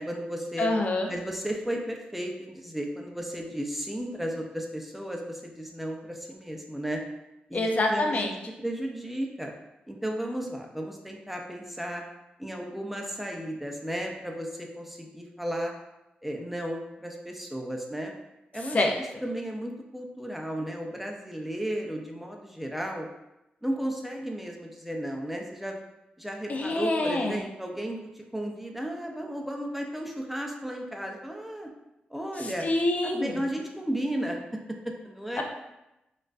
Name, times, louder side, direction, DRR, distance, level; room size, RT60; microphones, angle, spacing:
voice 1, 0.0-0.7 1.1-7.0 7.5-8.3 8.6-9.5 9.9-12.0 12.4-15.7 16.2-18.1 18.5-18.8 19.2-23.1 23.6-25.8 26.2-31.7 32.1-32.7 33.0-34.4 34.8-35.4, equal, 5° right, 1 dB, 0.6 m, -34 dB
voice 2, 0.6-1.1 7.5-8.3 18.7-19.0 26.5-27.4 32.4-33.4 35.4-35.5, left 2 dB, 45° left, 2 dB, 0.5 m, -26 dB
4.2 x 2.5 x 2.4 m, 0.92 s
cardioid pair, 65°, 3 cm